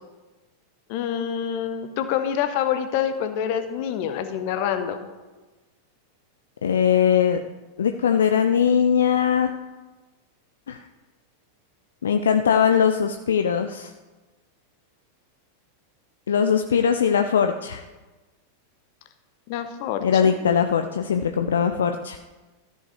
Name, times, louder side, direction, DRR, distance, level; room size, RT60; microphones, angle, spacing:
voice 1, 0.9-5.0 19.5-20.2, left 9 dB, 45° left, 9 dB, 1.0 m, -26 dB
voice 2, 6.6-7.4 7.8-9.5 10.7-10.8 12.0-13.9 16.3-17.8 20.0-22.2, left 7 dB, 65° left, 7 dB, 0.5 m, -20 dB
13.5 x 5.4 x 5.1 m, 1.2 s
figure-of-eight pair, 90°, 0 cm